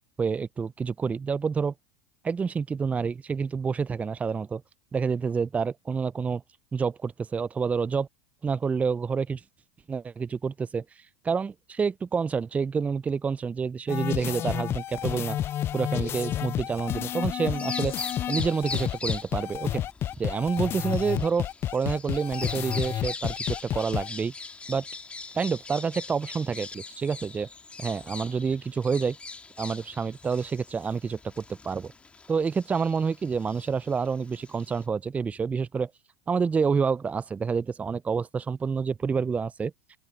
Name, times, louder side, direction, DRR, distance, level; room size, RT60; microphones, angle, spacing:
voice 1, 0.2-1.7 2.2-4.6 4.9-6.4 6.7-8.1 8.4-9.4 9.9-10.8 11.2-15.4 15.7-17.9 18.3-19.9 20.2-24.3 24.7-24.8 25.3-27.5 27.8-29.2 29.6-31.9 32.3-35.9 36.3-39.7, right 5 dB, 20° right, 0.7 m, -28 dB
sound 1, 13.9-24.1, left 11 dB, 35° left, 0.3 m, -30 dB
Bird vocalization bird call bird song, 17.5-34.8, left 4 dB, 15° left, 2.5 m, -41 dB
open air
hypercardioid pair, 85°, 7 cm